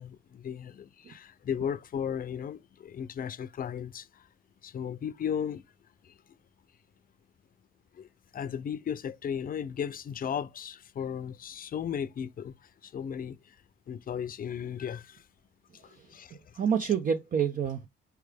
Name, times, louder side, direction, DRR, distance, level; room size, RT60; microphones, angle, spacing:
voice 1, 0.0-4.3 4.6-5.6 6.0-6.1 7.9-8.1 8.3-12.5 12.8-13.6 13.9-15.2 15.7-16.4, left 8 dB, 45° left, 0.5 m, -35 dB
voice 2, 15.8-17.9, right 7 dB, 45° right, 0.6 m, -29 dB
4.7 x 3.2 x 3.4 m
cardioid pair, 90°, 20 cm